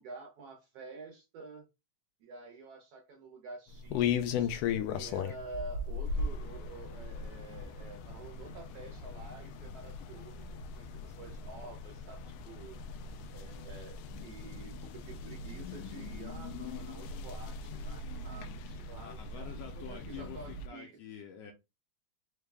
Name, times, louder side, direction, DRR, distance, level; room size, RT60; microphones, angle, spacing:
voice 1, 0.0-1.7 2.2-4.5 4.9-10.4 10.7-12.8 13.3-20.9, right 3 dB, 70° right, 1.6 m, -49 dB
sound 1, 3.7-20.7, left 5 dB, 90° left, 1.4 m, -38 dB
voice 2, 18.9-21.5, left 8 dB, 75° left, 1.6 m, -47 dB
4.7 x 2.2 x 3.3 m
omnidirectional pair, 3.4 m